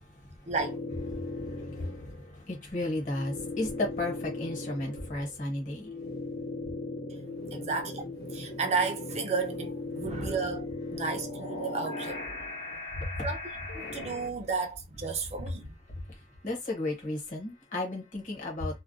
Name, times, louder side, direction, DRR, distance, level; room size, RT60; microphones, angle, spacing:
voice 1, 0.1-0.5 1.1-6.0 12.4-13.3 13.8-14.0 15.5-15.6 15.9-18.8, left 2 dB, 45° left, 1.1 m, -35 dB
sound 1, 0.6-2.3 2.8-14.3, left 2 dB, 65° left, 0.8 m, -38 dB
voice 2, 7.5-8.0 8.3-12.2 13.2-13.4 13.7-15.7, right 4 dB, 35° right, 0.4 m, -32 dB
2.3 x 2.1 x 2.6 m
head